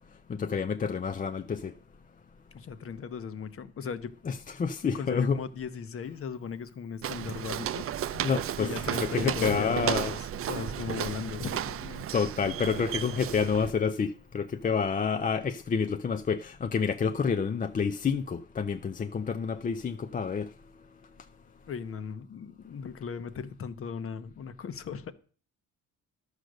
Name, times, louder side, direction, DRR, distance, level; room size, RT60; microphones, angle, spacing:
voice 1, 0.3-1.7 4.3-5.4 8.2-10.1 12.1-20.5, left 6 dB, 25° left, 0.5 m, -29 dB
voice 2, 2.5-4.1 4.9-7.8 8.6-12.1 21.7-25.1, left 6 dB, 45° left, 1.0 m, -37 dB
Walk footsteps, 7.0-13.7, right 10 dB, 45° right, 0.5 m, -33 dB
12.0 x 6.5 x 6.4 m
cardioid pair, 140°, 32 cm